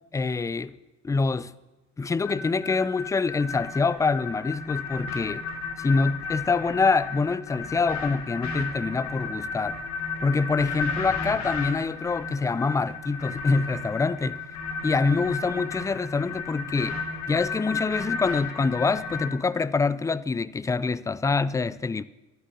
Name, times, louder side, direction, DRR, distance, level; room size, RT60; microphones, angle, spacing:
voice 1, 0.1-0.7 1.0-1.5 2.0-5.4 5.8-9.8 10.2-14.5 14.8-17.0 17.3-22.0, left 4 dB, 10° left, 0.3 m, -25 dB
sound 1, 2.2-19.3, left 4 dB, 45° left, 2.9 m, -33 dB
11.0 x 9.8 x 6.7 m
hypercardioid pair, 60°, 38 cm